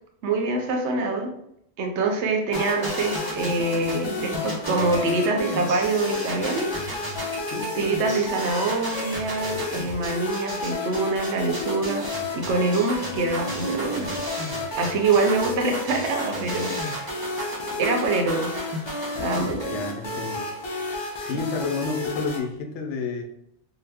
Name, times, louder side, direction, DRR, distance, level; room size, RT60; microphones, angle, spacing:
voice 1, 0.2-1.3 1.8-6.7 7.8-12.0 12.3-14.1 14.8-17.3 17.8-18.7 19.2-19.7 20.0-20.1 21.2-21.3, right 3 dB, 75° right, 3 dB, 0.9 m, -25 dB
sound 1, 2.5-22.4, left 2 dB, 50° left, 0.3 m, -32 dB
sound 2, 2.5-19.5, right 1 dB, 25° right, 0.7 m, -35 dB
voice 2, 19.7-20.5 21.2-23.2, left 4 dB, 80° left, 3 dB, 0.9 m, -30 dB
2.8 x 2.1 x 3.3 m, 0.74 s
omnidirectional pair, 1.2 m